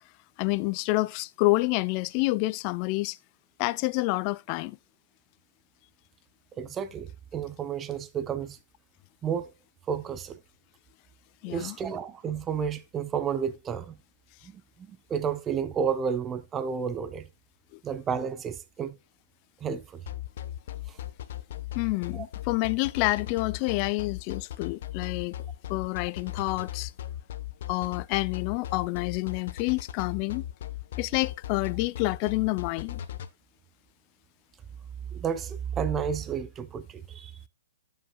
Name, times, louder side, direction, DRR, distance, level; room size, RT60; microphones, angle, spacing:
voice 1, 0.4-3.2 3.6-4.8 11.4-11.7 21.7-25.4 25.7-26.9 27.7-30.4 31.0-33.0, left 22 dB, 35° left, 0.3 m, -28 dB
voice 2, 6.6-8.6 9.2-9.5 9.9-10.4 11.4-14.0 14.4-17.3 17.8-19.0 19.6-20.0 20.9-21.0 22.1-22.3 35.1-37.3, right 7 dB, 20° right, 0.7 m, -31 dB
sound 1, 20.1-33.3, left 13 dB, 55° left, 0.9 m, -37 dB
14.0 x 5.8 x 2.3 m
hypercardioid pair, 135°, 0 cm